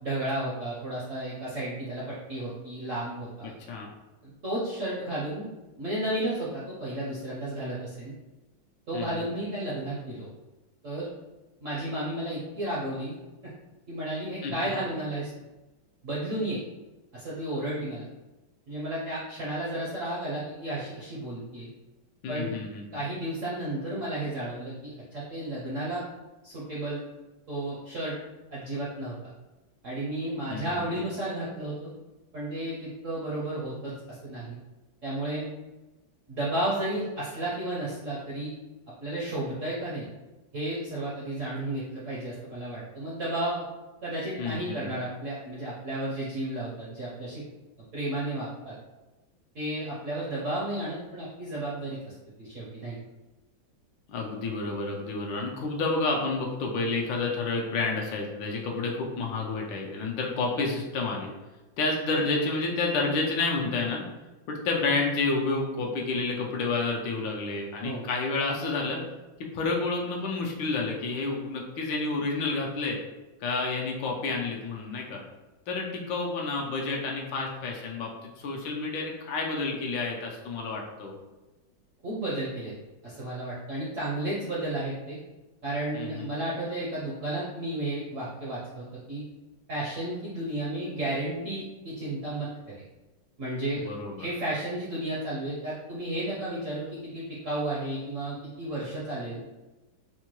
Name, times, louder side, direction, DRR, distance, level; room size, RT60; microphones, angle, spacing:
voice 1, 0.0-3.5 4.2-5.5 5.8-8.1 8.9-10.3 10.8-11.1 11.6-13.1 13.9-15.3 16.0-16.6 17.1-18.0 18.7-21.7 22.3-22.6 22.9-26.0 26.4-27.0 27.5-28.1 28.5-29.3 29.8-31.9 32.3-34.6 35.0-35.5 36.3-38.5 39.0-40.1 40.5-43.7 44.0-47.4 47.9-48.7 49.5-52.1 52.4-53.0 67.8-68.1 82.0-82.7 83.0-85.2 85.6-89.2 89.7-92.5 93.4-93.9 94.2-99.5, right 1 dB, 65° right, -7 dB, 0.7 m, -33 dB
voice 2, 8.9-9.3 14.4-14.5 22.2-22.8 30.5-30.8 44.4-44.9 54.1-61.3 61.8-64.1 64.5-69.0 69.5-73.0 73.4-75.2 75.7-81.1 85.9-86.3 93.8-94.3, left 3 dB, 75° left, -1 dB, 1.2 m, -30 dB
4.4 x 2.2 x 2.9 m, 1.1 s
omnidirectional pair, 2.2 m